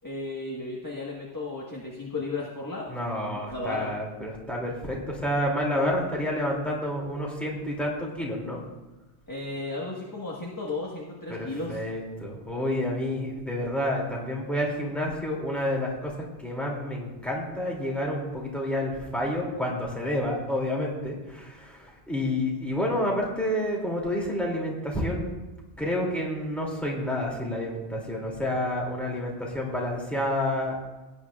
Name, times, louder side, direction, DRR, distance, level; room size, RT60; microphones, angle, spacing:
voice 1, 0.0-3.0 3.3-4.0 9.3-11.8, left 2 dB, 15° left, -4 dB, 1.3 m, -34 dB
voice 2, 2.9-8.6 11.3-16.1 16.4-25.3 25.8-30.8, left 1 dB, ahead, -3 dB, 2.5 m, -29 dB
18.5 x 9.5 x 2.4 m, 1.1 s
omnidirectional pair, 1.1 m